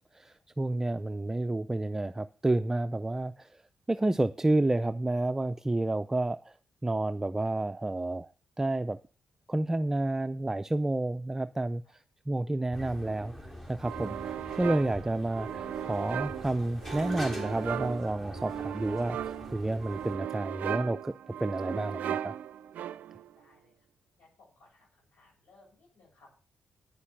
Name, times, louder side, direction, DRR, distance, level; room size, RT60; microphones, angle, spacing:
voice 1, 0.1-3.5 3.9-6.5 6.8-8.3 8.6-9.0 9.5-11.8 12.3-19.2 19.5-21.1 21.4-22.3, right 2 dB, 15° right, 12 dB, 0.5 m, -30 dB
sound 1, 12.7-20.2, equal, 15° left, 3.5 m, -43 dB
sound 2, 13.8-23.3, right 10 dB, 80° right, 0.4 m, -37 dB
voice 2, 22.8-23.8 24.2-26.3, left 2 dB, 80° left, -3 dB, 7.4 m, -63 dB
9.7 x 6.8 x 7.3 m, 0.39 s
cardioid pair, 75°, 3 cm